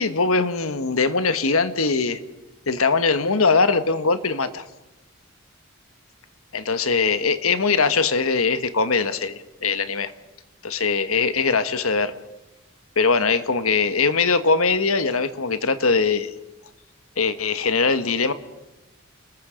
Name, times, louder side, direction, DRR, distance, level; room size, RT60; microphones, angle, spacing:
voice 1, 0.0-2.2 2.7-4.6 6.5-10.1 10.6-12.1 13.0-16.3 17.2-18.3, left 4 dB, 85° left, 11 dB, 1.4 m, -21 dB
29.5 x 20.5 x 5.2 m, 0.98 s
head